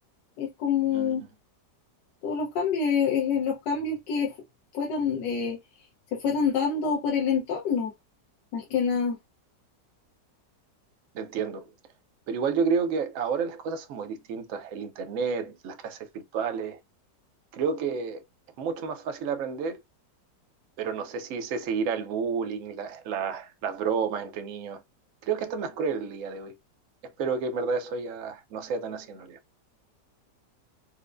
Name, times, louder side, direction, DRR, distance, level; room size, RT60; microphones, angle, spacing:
voice 1, 0.4-1.2 2.2-4.3 4.7-5.6 6.1-7.9 8.5-9.2, left 6 dB, 80° left, 1.5 m, -26 dB
voice 2, 0.9-1.3 11.1-11.7 12.3-16.8 17.5-18.2 18.6-19.8 20.8-24.8 25.2-26.6 27.2-29.4, right 5 dB, 70° right, 0.8 m, -30 dB
4.4 x 2.1 x 2.4 m
omnidirectional pair, 1.9 m